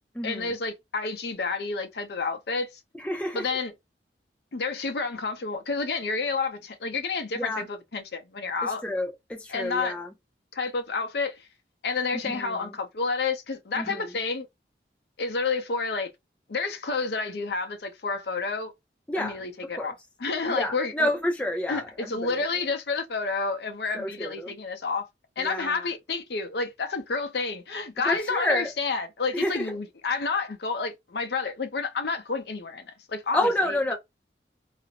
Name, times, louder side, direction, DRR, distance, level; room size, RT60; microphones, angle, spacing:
voice 1, 0.2-2.7 3.3-3.7 4.5-8.8 9.5-10.0 10.5-11.4 11.8-14.5 15.2-16.1 16.5-18.7 19.2-19.9 20.2-21.1 21.7-25.1 25.4-33.9, left 4 dB, 70° left, 0.6 m, -30 dB
voice 2, 3.0-3.5 7.3-7.6 8.6-10.1 12.2-12.6 13.8-14.0 19.1-19.3 19.8-19.9 20.5-22.4 23.9-24.5 25.4-25.8 28.1-28.7 29.3-29.7 33.3-33.9, left 1 dB, 5° left, 0.4 m, -29 dB
2.5 x 2.0 x 2.8 m
head